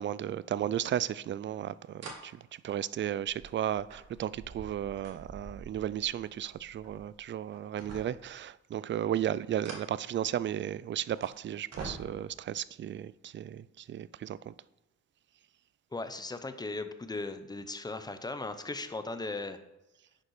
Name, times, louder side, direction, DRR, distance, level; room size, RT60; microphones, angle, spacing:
voice 1, 0.0-14.5, right 10 dB, 40° right, 0.4 m, -34 dB
sound 1, 2.0-2.2 2.7-7.2 7.5-8.4 9.4-10.6 11.1-11.3 11.7-12.4 13.4-13.5, right 3 dB, 55° right, 2.0 m, -47 dB
voice 2, 15.9-19.6, left 3 dB, 15° left, 0.9 m, -37 dB
10.0 x 5.1 x 4.9 m
cardioid pair, 90°, 30 cm